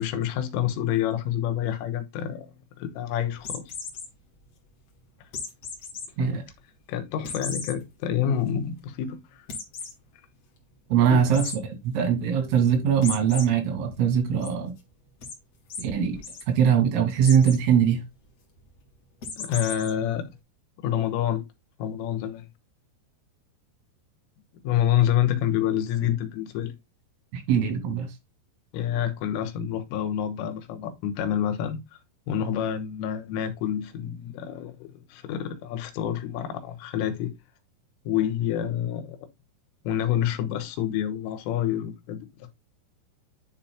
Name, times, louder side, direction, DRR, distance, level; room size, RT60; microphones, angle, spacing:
voice 1, 0.0-2.5 2.8-3.6 6.2-6.4 6.9-9.2 11.1-11.4 19.4-20.3 20.8-21.4 21.8-22.5 24.6-26.7 28.7-31.8 32.3-37.3 38.1-39.2 39.9-42.5, left 10 dB, 85° left, 3.7 m, -27 dB
sound 1, 3.4-4.1 5.3-6.1 6.5-6.6 7.2-7.7 8.2-8.3 8.6-8.7 9.5-9.9 11.3-11.6 13.0-13.4 13.9-14.5 15.2-15.3 15.7-15.8 16.1-16.4 17.2-17.6 19.2-19.9, left 4 dB, 60° left, 1.6 m, -35 dB
voice 2, 10.9-14.7 15.8-16.2 16.5-18.0 27.3-28.1, right 8 dB, 85° right, 4.6 m, -22 dB
10.5 x 4.4 x 2.2 m
omnidirectional pair, 5.8 m